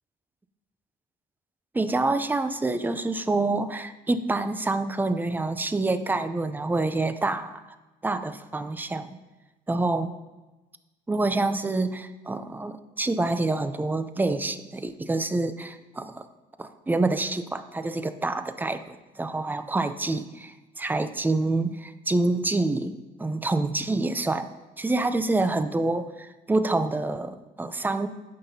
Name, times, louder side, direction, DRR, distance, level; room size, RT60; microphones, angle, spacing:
voice 1, 1.7-7.6 8.0-9.1 9.7-10.1 11.1-16.3 16.6-24.5 24.8-28.1, right 2 dB, 10° right, 11 dB, 0.5 m, -27 dB
16.5 x 5.7 x 2.8 m, 1.1 s
cardioid pair, 110°, 17 cm